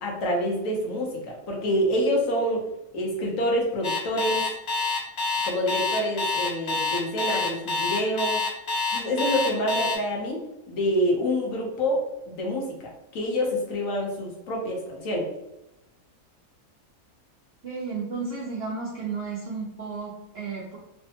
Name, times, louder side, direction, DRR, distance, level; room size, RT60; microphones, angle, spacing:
voice 1, 0.0-2.6 2.9-4.5 5.4-8.4 8.9-10.4 10.7-15.3, equal, 70° left, -1 dB, 1.2 m, -27 dB
Alarm, 3.8-10.0, left 4 dB, 85° left, 0.3 m, -26 dB
voice 2, 17.6-20.8, right 4 dB, 60° right, -4 dB, 0.6 m, -33 dB
3.2 x 2.1 x 2.8 m, 0.90 s
omnidirectional pair, 1.5 m